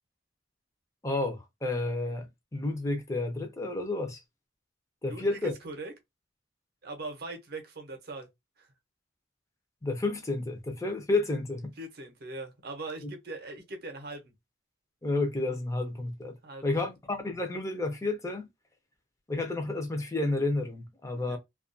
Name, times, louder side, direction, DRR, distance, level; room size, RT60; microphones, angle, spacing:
voice 1, 1.0-4.2 5.0-5.5 9.8-11.7 13.0-13.1 15.0-16.4 16.6-18.5 19.3-21.4, left 2 dB, 15° left, 0.5 m, -31 dB
voice 2, 5.0-5.9 6.8-8.3 8.6-8.7 11.8-14.3 16.4-16.7 21.1-21.4, right 2 dB, 55° right, 0.6 m, -41 dB
2.3 x 2.2 x 2.5 m
head